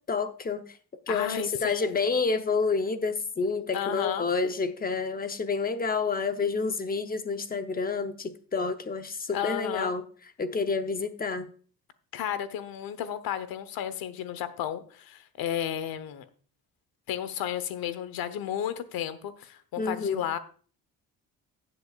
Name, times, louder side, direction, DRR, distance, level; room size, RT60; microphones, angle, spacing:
voice 1, 0.1-0.7 1.1-10.0 10.4-11.5 19.8-20.2, left 4 dB, 25° left, 8 dB, 0.8 m, -29 dB
voice 2, 1.1-1.9 3.7-4.3 9.3-9.9 12.1-16.2 17.1-20.4, left 10 dB, 80° left, 13 dB, 1.1 m, -33 dB
15.5 x 7.7 x 2.4 m, 0.43 s
cardioid pair, 125°, 36 cm